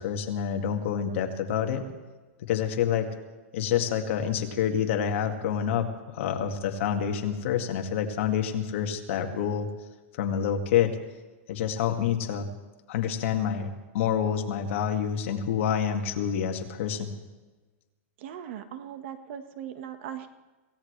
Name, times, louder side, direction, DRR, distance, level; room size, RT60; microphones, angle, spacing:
voice 1, 0.0-1.9 2.5-3.1 3.5-9.7 10.2-11.0 11.5-12.5 12.9-17.1, left 8 dB, 60° left, 4 dB, 2.0 m, -27 dB
voice 2, 18.2-20.3, right 9 dB, 55° right, 9 dB, 1.4 m, -39 dB
26.5 x 16.5 x 3.3 m, 1.2 s
supercardioid pair, 160°, 8 cm